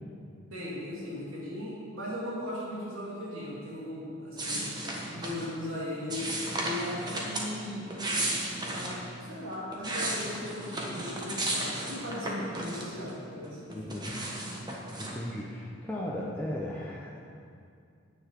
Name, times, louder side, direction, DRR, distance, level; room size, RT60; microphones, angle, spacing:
voice 1, 0.5-4.6 5.1-7.9 8.7-14.0, left 1 dB, 75° right, -7 dB, 2.9 m, -38 dB
sound 1, 4.4-5.5 6.1-7.5 7.9-9.0 9.5-13.1 13.4-15.2, right 1 dB, 20° right, 1.3 m, -34 dB
voice 2, 13.7-14.3 15.0-17.2, left 1 dB, 5° left, -5 dB, 0.8 m, -37 dB
9.8 x 7.2 x 7.6 m, 2.3 s
head